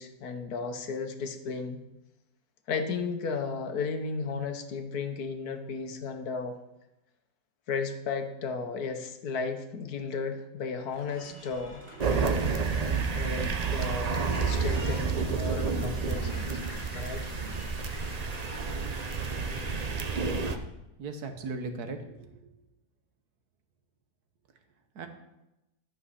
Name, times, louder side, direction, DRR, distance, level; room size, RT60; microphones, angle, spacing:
voice 1, 0.0-1.8 2.7-6.6 7.7-11.8 13.1-16.6 16.9-17.3, left 4 dB, 70° left, 7 dB, 1.5 m, -34 dB
sound 1, 10.9-20.0, equal, 5° right, 3.0 m, -47 dB
sound 2, 12.0-20.6, right 5 dB, 45° right, 0.5 m, -30 dB
voice 2, 21.0-22.3 25.0-25.1, right 3 dB, 75° right, 7 dB, 1.6 m, -37 dB
11.5 x 6.3 x 5.6 m, 0.93 s
omnidirectional pair, 1.7 m